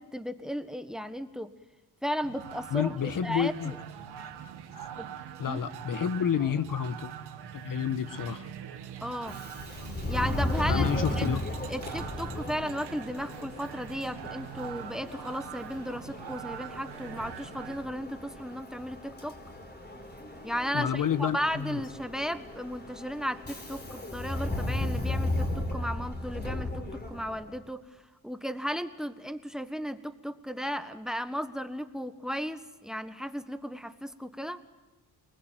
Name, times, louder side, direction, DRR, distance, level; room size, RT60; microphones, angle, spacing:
voice 1, 0.0-1.5 2.0-3.7 5.0-5.1 5.5-5.6 6.4-6.5 9.0-9.4 10.1-11.3 11.7-19.4 20.4-27.8 28.2-34.6, equal, ahead, 11 dB, 1.4 m, -35 dB
sound 1, 2.2-17.8, right 9 dB, 85° right, 2.3 m, -43 dB
voice 2, 2.7-3.7 4.7-4.9 5.4-7.1 7.5-8.5 10.7-11.4 20.7-21.8, left 8 dB, 55° left, 12 dB, 1.3 m, -29 dB
Subway metro underground, 9.2-27.6, left 1 dB, 25° left, 3.9 m, -35 dB
29.0 x 20.0 x 9.2 m, 1.1 s
cardioid pair, 100°, 39 cm